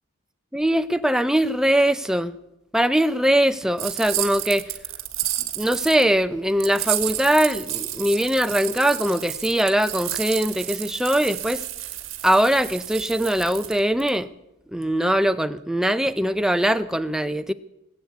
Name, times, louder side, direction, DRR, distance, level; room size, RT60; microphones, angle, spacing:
voice 1, 0.5-2.4 2.7-4.6 5.6-11.6 12.2-14.3 14.7-17.5, right 1 dB, 5° right, 11 dB, 0.5 m, -21 dB
sound 1, 3.8-6.0 6.6-14.1, right 14 dB, 85° right, 1.4 m, -31 dB
20.0 x 8.1 x 8.1 m, 0.92 s
head